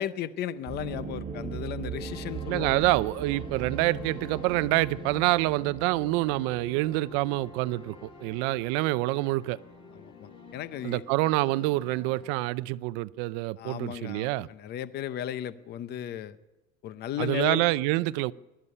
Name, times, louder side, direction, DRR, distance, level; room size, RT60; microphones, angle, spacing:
voice 1, 0.0-2.9 9.9-11.0 13.6-16.4 16.8-17.6, left 11 dB, 30° left, 0.7 m, -35 dB
falcon atmosphere a, 0.7-10.2 10.4-10.5 10.7-10.8 17.2-17.8, right 5 dB, 25° right, 1.5 m, -40 dB
sound 1, 2.0-12.5, left 3 dB, 15° left, 2.8 m, -48 dB
voice 2, 2.5-9.6 10.8-14.5 17.2-18.3, right 19 dB, 65° right, 0.6 m, -27 dB
20.5 x 12.5 x 9.9 m
cardioid pair, 175°, 32 cm